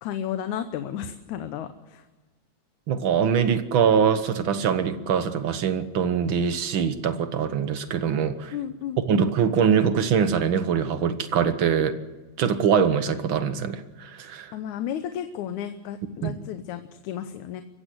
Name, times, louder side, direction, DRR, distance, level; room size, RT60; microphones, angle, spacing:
voice 1, 0.0-2.0 8.5-9.3 14.5-17.6, left 9 dB, 90° left, 9 dB, 2.4 m, -33 dB
voice 2, 2.9-8.5 9.1-12.0 12.4-14.5 16.2-16.3, right 7 dB, 55° right, 10 dB, 1.6 m, -23 dB
24.5 x 15.5 x 7.8 m, 1.2 s
omnidirectional pair, 3.3 m